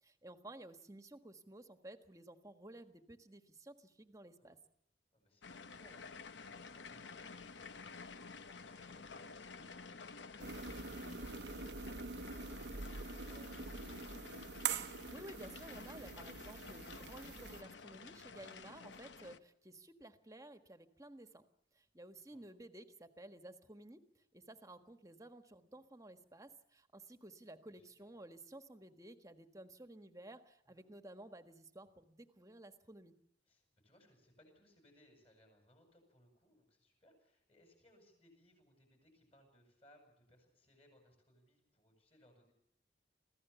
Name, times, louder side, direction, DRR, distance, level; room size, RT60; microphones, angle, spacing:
voice 1, 0.0-4.6 15.1-21.4 21.7-33.1, right 1 dB, 20° right, 8 dB, 1.5 m, -54 dB
voice 2, 5.1-14.2 22.3-22.4 27.7-28.1 30.6-30.8 33.5-42.5, equal, 35° left, 4 dB, 7.9 m, -68 dB
sound 1, 5.4-19.4, left 4 dB, 80° left, 0.9 m, -52 dB
sound 2, 10.4-17.6, right 5 dB, 70° right, 0.8 m, -44 dB
26.5 x 16.0 x 7.0 m, 0.73 s
head